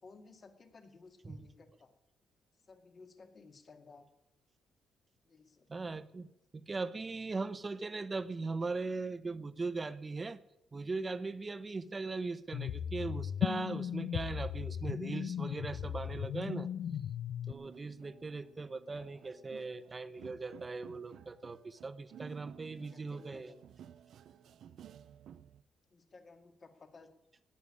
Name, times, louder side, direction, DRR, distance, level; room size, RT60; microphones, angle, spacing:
voice 1, 0.0-2.0 2.6-4.1 5.2-5.7 18.9-19.2 22.8-23.6 25.9-27.1, left 4 dB, 40° left, 6 dB, 2.1 m, -57 dB
voice 2, 5.7-10.4 10.7-16.7 17.5-23.5, right 3 dB, 25° right, 14 dB, 0.9 m, -39 dB
sound 1, 12.5-17.5, left 9 dB, 70° left, 0.5 m, -37 dB
sound 2, 17.5-25.6, right 9 dB, 70° right, 0.6 m, -55 dB
18.5 x 7.0 x 9.9 m, 0.86 s
cardioid pair, 90°, 0 cm